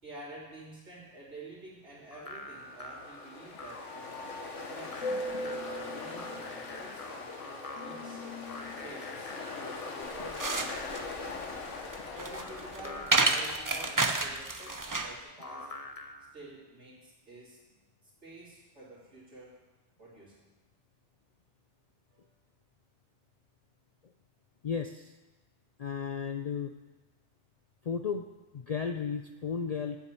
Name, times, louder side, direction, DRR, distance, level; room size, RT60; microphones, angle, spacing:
voice 1, 0.0-4.2 4.6-7.3 7.8-8.2 8.8-11.4 12.0-15.7 16.3-17.6 18.0-19.6 20.0-20.5 22.1-22.3, right 2 dB, 70° right, -8 dB, 3.2 m, -49 dB
sound 1, 2.1-16.3, left 2 dB, 35° left, 0.8 m, -46 dB
Ocean, 2.4-13.5, left 3 dB, 85° left, 1.5 m, -40 dB
sound 2, 10.0-15.2, right 3 dB, 30° right, 0.4 m, -30 dB
voice 2, 24.6-25.1 25.8-26.7 27.8-28.3 28.5-30.0, left 6 dB, 60° left, 5 dB, 0.4 m, -34 dB
8.1 x 7.4 x 8.1 m, 1.1 s
omnidirectional pair, 1.2 m